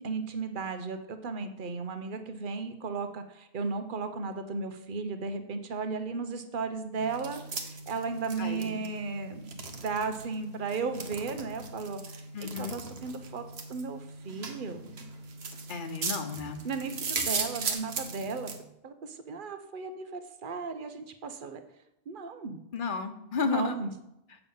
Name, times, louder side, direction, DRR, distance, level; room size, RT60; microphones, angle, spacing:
voice 1, 0.0-14.8 16.6-18.5 18.8-21.6 22.1-22.6 23.4-23.9, right 4 dB, 55° right, 8 dB, 1.0 m, -35 dB
sound 1, 7.0-18.6, right 4 dB, 80° right, 1.3 m, -38 dB
voice 2, 8.4-8.8 12.3-12.8 15.7-16.6 22.7-23.7, left 5 dB, 55° left, 8 dB, 1.0 m, -33 dB
8.1 x 7.0 x 5.5 m, 0.86 s
omnidirectional pair, 1.1 m